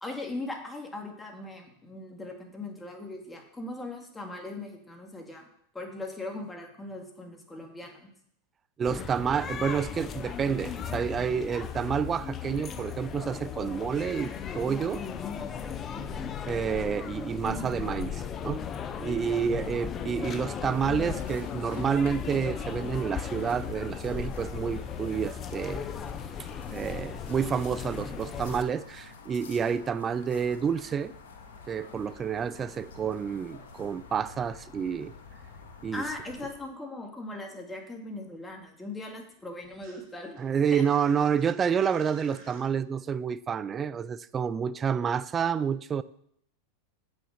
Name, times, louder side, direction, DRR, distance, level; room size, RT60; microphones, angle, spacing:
voice 1, 0.0-5.5 5.7-8.1 15.9-16.3 17.4-17.7 35.9-40.4 40.7-40.8, left 2 dB, 10° left, 2 dB, 2.1 m, -39 dB
sound 1, 8.8-28.6, left 7 dB, 30° left, 0.7 m, -36 dB
voice 2, 8.8-15.0 16.5-18.6 19.0-25.9 26.7-31.1 31.7-35.1 35.8-36.0 40.4-46.0, right 7 dB, 25° right, 16 dB, 0.4 m, -29 dB
sound 2, 20.6-36.6, left 5 dB, 75° left, 1.7 m, -48 dB
sound 3, 35.0-36.8 37.0-42.6, right 3 dB, 45° right, 4.4 m, -57 dB
7.8 x 6.3 x 6.4 m, 0.71 s
hypercardioid pair, 100°, 0 cm